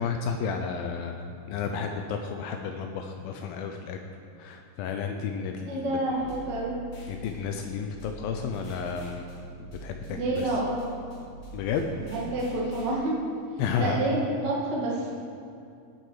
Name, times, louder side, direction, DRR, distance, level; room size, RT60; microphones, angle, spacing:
voice 1, 0.0-4.0 4.4-5.9 7.1-9.3 9.6-10.5 11.5-11.8 13.6-14.0, left 6 dB, 85° left, 4 dB, 2.1 m, -32 dB
voice 2, 5.7-6.8 10.1-10.9 12.0-13.1 13.8-15.1, right 1 dB, 40° right, -4 dB, 1.5 m, -28 dB
sound 1, 6.1-12.9, right 1 dB, 50° left, 2.8 m, -43 dB
18.5 x 7.9 x 4.8 m, 2.5 s
omnidirectional pair, 5.1 m